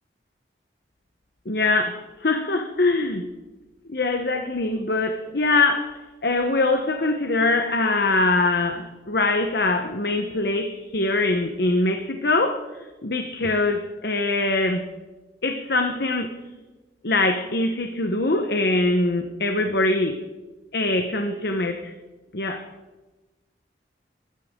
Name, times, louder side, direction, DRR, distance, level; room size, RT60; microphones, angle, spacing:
voice 1, 1.5-3.2 3.9-12.6 13.0-14.9 15.4-16.3 17.0-20.2 20.7-21.9 22.3-22.6, left 2 dB, 65° left, 5 dB, 1.0 m, -23 dB
23.0 x 13.0 x 3.7 m, 1.2 s
head